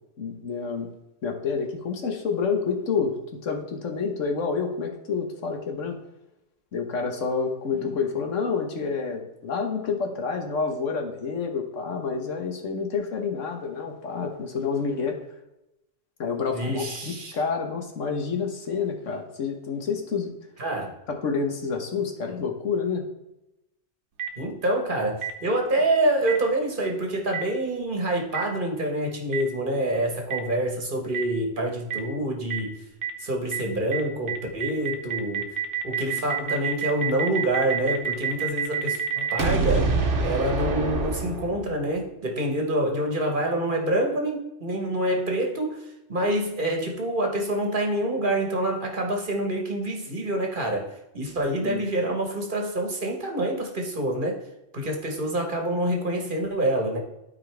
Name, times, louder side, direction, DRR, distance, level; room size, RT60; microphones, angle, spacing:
voice 1, 0.2-0.9 1.2-3.2 3.4-6.0 6.7-15.2 16.2-20.3 21.1-23.0 51.5-51.8, left 5 dB, 90° left, 3 dB, 1.6 m, -28 dB
voice 2, 16.5-17.4 20.6-20.9 24.4-32.8 33.2-35.5 35.8-39.9 40.2-54.4 54.7-57.0, right 1 dB, 45° right, 2 dB, 1.5 m, -26 dB
Boom, 24.2-24.3 25.2-25.3 26.3-26.4 27.3-27.4 28.3-28.4 29.3-29.4 30.3-30.4 31.1-31.2 31.9-32.0 32.5-32.6 33.0-33.1 33.5-33.6 33.9-34.0 34.3-41.8, right 5 dB, 75° right, 1.4 m, -26 dB
12.0 x 4.6 x 3.4 m, 0.92 s
omnidirectional pair, 1.2 m